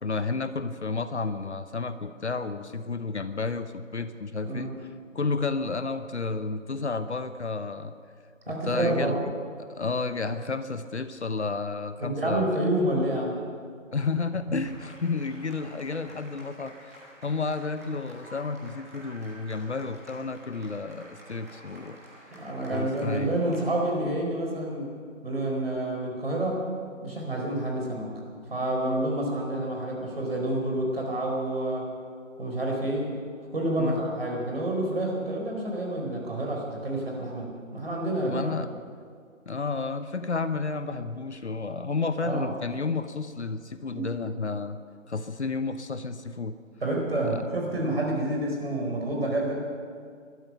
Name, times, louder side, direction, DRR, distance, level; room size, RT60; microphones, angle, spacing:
voice 1, 0.0-7.9 8.5-12.6 13.9-17.0 17.2-22.0 22.7-23.4 33.8-34.0 38.2-38.7 39.5-44.8 45.1-46.6 47.2-47.5, left 4 dB, 55° left, 11 dB, 0.9 m, -31 dB
voice 2, 4.4-4.8 8.5-9.2 12.0-13.3 14.5-14.6 22.3-24.9 25.2-26.6 27.0-28.1 28.5-31.9 32.4-33.2 33.5-38.6 42.2-42.5 43.9-44.1 46.8-49.7, right 1 dB, 45° right, 0 dB, 4.3 m, -28 dB
sound 1, 14.6-23.9, equal, 10° right, 1.4 m, -50 dB
18.5 x 13.0 x 5.7 m, 2.1 s
figure-of-eight pair, 175°, 40 cm